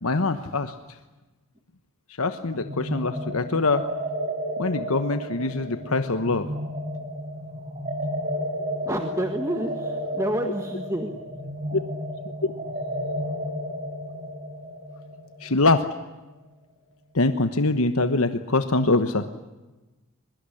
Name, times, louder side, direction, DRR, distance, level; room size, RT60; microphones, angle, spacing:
voice 1, 0.0-0.7 2.2-3.8 4.6-6.5 10.4-10.5 11.7-11.8 12.4-12.5 15.4-15.8 17.1-19.3, left 3 dB, 75° left, 9 dB, 1.2 m, -23 dB
sound 1, 2.5-16.1, equal, 35° right, 5.3 m, -32 dB
voice 2, 8.8-11.1, right 1 dB, 15° right, 5 dB, 1.5 m, -28 dB
23.5 x 22.0 x 9.9 m, 1.1 s
head